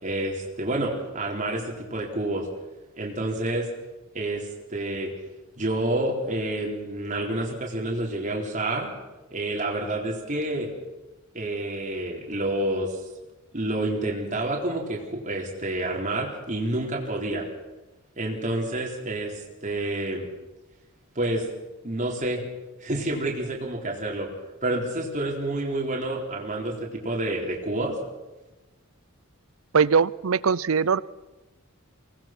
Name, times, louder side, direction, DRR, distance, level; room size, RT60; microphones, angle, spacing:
voice 1, 0.0-2.5 3.0-3.7 4.1-5.1 5.6-8.9 9.3-10.7 11.3-12.9 13.5-17.5 18.2-19.3 19.6-20.3 21.2-21.5 21.8-22.4 22.8-24.3 24.6-26.7 27.0-28.0, right 1 dB, 35° right, -1 dB, 4.0 m, -28 dB
voice 2, 29.7-31.0, right 6 dB, 80° right, 20 dB, 0.6 m, -21 dB
24.0 x 19.0 x 6.1 m, 1.1 s
head